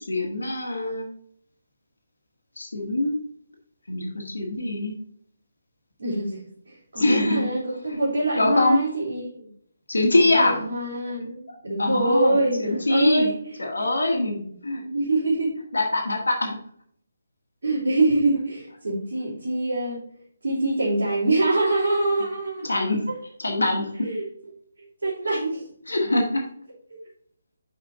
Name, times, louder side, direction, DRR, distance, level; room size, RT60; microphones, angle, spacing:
voice 1, 0.1-1.1 2.6-3.2 3.9-4.9 7.0-7.5 7.9-8.0 8.4-8.8 9.9-10.5 11.5-13.3 13.6-14.8 15.7-16.5 22.6-23.1 23.4-23.9 25.9-26.4, left 2 dB, 70° left, 1 dB, 1.6 m, -23 dB
voice 2, 6.0-6.4 6.9-9.5 10.1-13.6 14.8-15.5 17.6-20.0 20.4-22.8 24.0-24.3 25.0-25.7 26.9-27.0, right 2 dB, 60° right, -8 dB, 3.3 m, -24 dB
6.0 x 5.5 x 4.0 m, 0.63 s
figure-of-eight pair, 145°, 0 cm